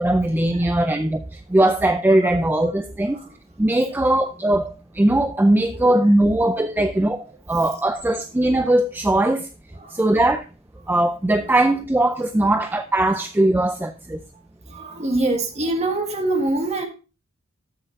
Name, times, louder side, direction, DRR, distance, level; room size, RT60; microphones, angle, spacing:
voice 1, 0.0-3.2 3.6-9.5 9.9-10.4 10.9-14.2, right 1 dB, 10° right, 0.3 m, -20 dB
voice 2, 0.5-0.9 1.5-1.6 2.2-2.7 3.0-3.4 3.8-4.2 5.5-6.4 6.8-6.9 7.5-7.6 9.7-10.1 11.4-11.6 12.4-12.6 14.3-16.9, right 2 dB, 30° right, 1.6 m, -28 dB
13.5 x 6.6 x 2.6 m
head